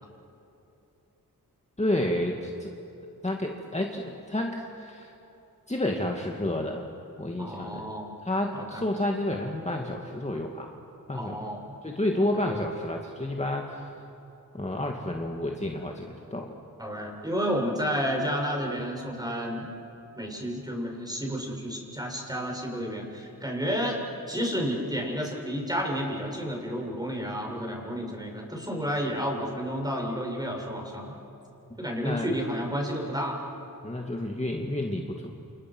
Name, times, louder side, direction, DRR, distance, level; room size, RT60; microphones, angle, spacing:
voice 1, 1.8-2.7 3.2-5.1 5.7-6.9 7.2-7.8 8.2-10.7 11.1-11.4 11.8-13.9 14.5-16.5 32.0-32.3 33.8-35.3, left 1 dB, 20° left, 1 dB, 2.3 m, -30 dB
voice 2, 7.4-8.1 8.5-8.8 11.1-11.6 12.3-12.4 16.8-19.7 20.2-24.0 24.3-31.2 31.8-33.4, equal, 10° right, 0 dB, 7.2 m, -31 dB
29.5 x 28.5 x 6.3 m, 3.0 s
cardioid pair, 55°, 37 cm